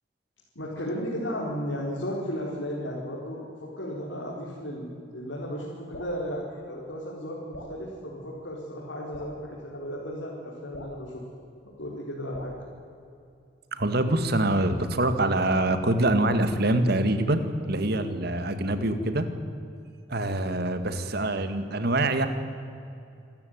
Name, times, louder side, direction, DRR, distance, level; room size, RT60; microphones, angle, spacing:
voice 1, 0.5-7.4 7.7-11.1 11.8-12.5, equal, 90° left, -4 dB, 4.7 m, -34 dB
Drip, 5.9-6.2 7.5-7.8 9.1-9.4 10.7-11.0 12.3-12.6, equal, 75° left, 6.3 m, -42 dB
voice 2, 13.7-17.4 17.7-19.3 20.1-22.3, right 1 dB, 55° right, 9 dB, 1.9 m, -25 dB
27.0 x 14.0 x 9.4 m, 2.5 s
head